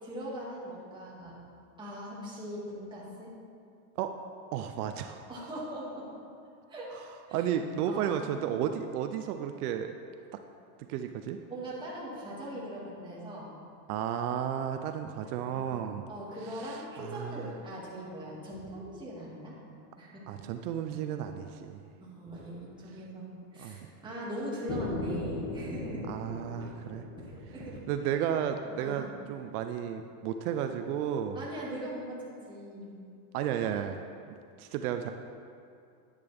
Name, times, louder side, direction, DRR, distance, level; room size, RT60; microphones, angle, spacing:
voice 1, 0.0-1.4 1.8-3.3 5.3-6.0 6.7-6.9 7.3-7.5 7.8-8.4 11.5-13.5 15.5-15.7 16.1-19.6 20.0-20.2 22.0-26.0 26.6-26.7 27.2-27.8 28.1-28.2 28.8-29.1 31.3-32.9, right 1 dB, 10° right, -7 dB, 2.3 m, -41 dB
voice 2, 4.5-5.2 7.3-9.9 10.3-10.4 10.9-11.4 13.9-16.0 16.6-17.5 20.3-21.8 23.6-23.9 26.1-27.1 27.9-31.4 33.3-34.0 34.3-35.1, right 9 dB, 75° right, 7 dB, 0.7 m, -33 dB
sound 1, 24.7-28.6, left 2 dB, 40° left, 1.9 m, -38 dB
10.0 x 10.0 x 3.5 m, 2.4 s
supercardioid pair, 155°, 46 cm